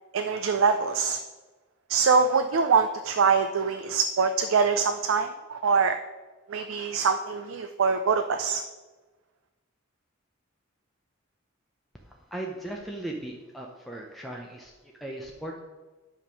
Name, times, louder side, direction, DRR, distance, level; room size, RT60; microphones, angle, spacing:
voice 1, 0.1-1.2 1.9-6.0 6.5-8.6, right 5 dB, 75° right, 8 dB, 0.4 m, -24 dB
voice 2, 11.9-15.6, right 1 dB, ahead, -1 dB, 0.6 m, -38 dB
10.0 x 3.6 x 6.1 m, 1.2 s
head